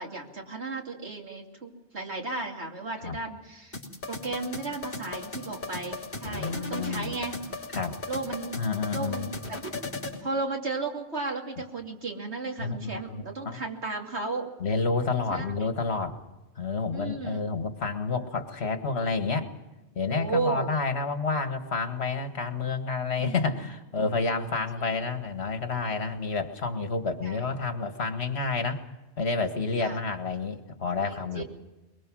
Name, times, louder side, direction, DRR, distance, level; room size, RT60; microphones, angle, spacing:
voice 1, 0.0-3.8 4.1-7.4 8.1-8.6 8.9-9.6 10.2-14.5 15.3-15.7 16.9-17.4 20.1-20.7 23.2-23.4 24.8-24.9 27.2-27.5 29.8-30.0 31.0-31.4, right 3 dB, 70° right, 1 dB, 2.9 m, -34 dB
sound 1, 3.7-10.2, left 2 dB, 45° left, 3.4 m, -37 dB
voice 2, 6.2-7.1 7.7-8.0 8.5-9.3 12.6-13.6 14.6-16.2 16.6-19.5 20.0-28.8 29.2-31.4, left 4 dB, 65° left, 7 dB, 1.9 m, -29 dB
22.5 x 22.0 x 6.3 m, 1.1 s
omnidirectional pair, 1.2 m